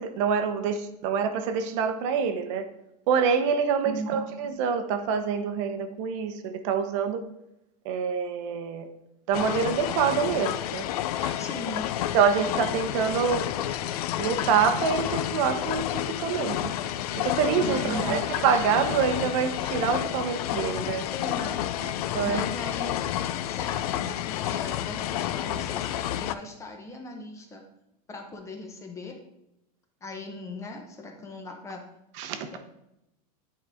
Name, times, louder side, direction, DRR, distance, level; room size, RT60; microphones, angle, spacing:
voice 1, 0.0-2.7 3.1-7.2 7.8-8.9 9.3-10.8 11.2-11.4 12.1-13.4 14.2-16.7 17.2-21.0 21.8-22.4 32.2-32.5, right 6 dB, 50° right, 7 dB, 0.8 m, -26 dB
voice 2, 3.8-4.2 11.4-11.9 17.6-18.2 21.1-21.6 22.2-23.0 23.4-27.6 28.1-29.2 30.0-31.9 32.5-32.6, left 1 dB, 15° left, 3 dB, 0.8 m, -38 dB
sound 1, 9.3-26.4, left 12 dB, 70° left, 0.5 m, -30 dB
9.2 x 4.8 x 3.5 m, 0.87 s
supercardioid pair, 155°, 20 cm